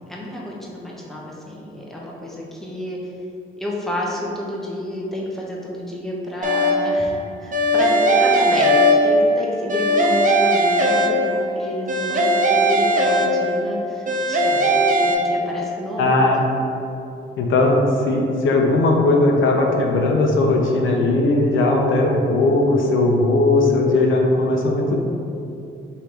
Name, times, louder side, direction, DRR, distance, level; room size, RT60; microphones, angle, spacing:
voice 1, 0.1-3.1 3.6-16.4, left 1 dB, ahead, -4 dB, 0.8 m, -30 dB
sound 1, 6.4-7.0 7.5-9.4 9.7-11.5 11.9-13.7 14.1-15.1, equal, 40° right, 0.7 m, -18 dB
voice 2, 16.0-16.5 17.4-25.0, left 2 dB, 65° left, 1 dB, 0.5 m, -18 dB
3.3 x 2.7 x 4.4 m, 2.6 s
cardioid pair, 80°, 21 cm